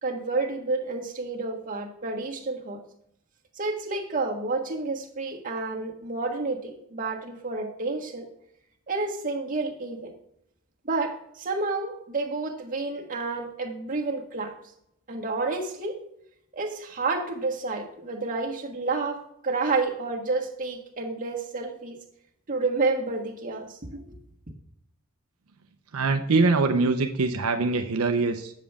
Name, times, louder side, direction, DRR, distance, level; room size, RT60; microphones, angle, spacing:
voice 1, 0.0-2.8 3.6-8.2 8.9-10.1 10.9-14.5 15.1-16.0 16.5-22.0 22.5-24.0, right 3 dB, 40° right, 0 dB, 1.4 m, -30 dB
voice 2, 25.9-28.5, right 3 dB, 85° right, 6 dB, 0.6 m, -23 dB
8.4 x 7.3 x 3.4 m, 0.76 s
head